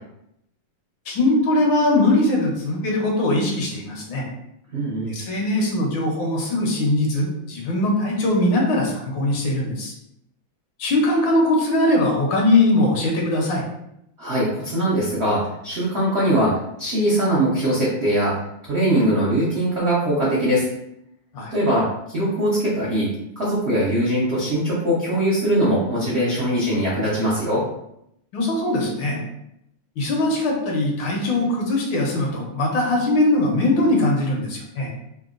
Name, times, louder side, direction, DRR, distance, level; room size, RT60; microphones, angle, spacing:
voice 1, 1.1-4.2 5.1-9.9 10.8-13.6 21.3-21.5 28.3-29.2 30.0-34.9, left 1 dB, 75° left, -1 dB, 1.4 m, -21 dB
voice 2, 4.7-5.2 14.2-20.7 21.5-23.1 23.4-27.6, right 1 dB, 65° right, -8 dB, 0.6 m, -21 dB
3.7 x 2.1 x 2.4 m, 0.78 s
omnidirectional pair, 2.2 m